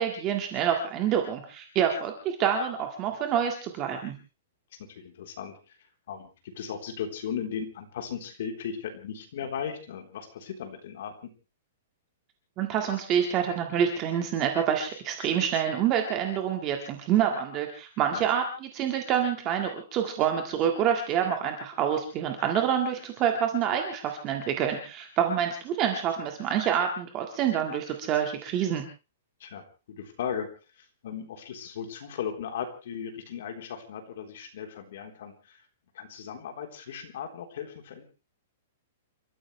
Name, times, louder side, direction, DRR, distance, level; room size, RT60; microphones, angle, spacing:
voice 1, 0.0-4.1 12.6-28.8, right 8 dB, 20° right, 4 dB, 1.9 m, -27 dB
voice 2, 4.9-5.5 6.1-11.3 18.1-18.3 29.4-30.5 30.8-35.6 35.9-38.0, left 7 dB, 50° left, 4 dB, 3.8 m, -37 dB
29.5 x 14.5 x 3.3 m, 0.33 s
hypercardioid pair, 180°, 0 cm